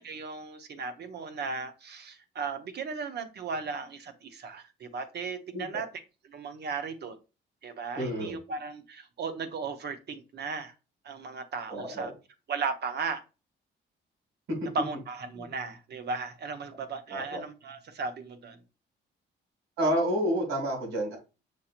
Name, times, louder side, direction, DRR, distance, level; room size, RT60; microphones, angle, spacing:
voice 1, 0.0-5.9 6.3-7.2 7.6-10.7 11.0-12.1 12.5-13.2 14.7-18.6, right 4 dB, 55° right, 0.8 m, -36 dB
voice 2, 7.9-8.4 11.7-12.1 14.5-14.6 15.4-15.5 17.1-17.4 19.8-21.2, equal, 85° right, 2.4 m, -29 dB
6.3 x 2.8 x 2.4 m
cardioid pair, 90°, 20 cm